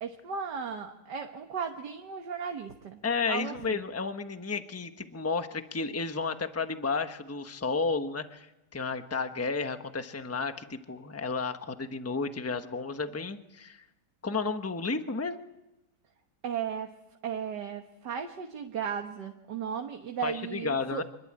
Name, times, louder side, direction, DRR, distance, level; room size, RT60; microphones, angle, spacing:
voice 1, 0.0-3.0 3.3-3.8 16.4-16.9 17.2-21.0, right 7 dB, 75° right, 4 dB, 1.9 m, -35 dB
voice 2, 3.0-13.8 14.2-15.4 20.2-21.0, left 4 dB, 10° left, 8 dB, 1.0 m, -32 dB
26.0 x 21.5 x 8.8 m, 0.95 s
omnidirectional pair, 1.8 m